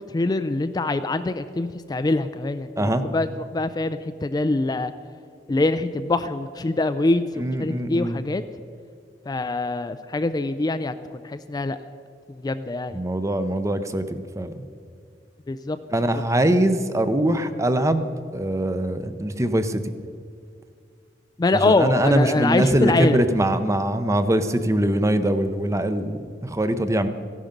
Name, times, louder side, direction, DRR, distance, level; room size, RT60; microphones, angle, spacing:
voice 1, 0.0-4.9 5.5-8.4 9.3-10.9 11.2-11.8 12.3-13.0 15.5-15.8 21.4-23.2, left 2 dB, 25° left, 10 dB, 0.4 m, -24 dB
voice 2, 7.4-8.2 12.9-14.6 15.9-19.8 21.6-27.1, right 1 dB, 20° right, 10 dB, 0.6 m, -22 dB
15.0 x 11.0 x 5.2 m, 2.2 s
head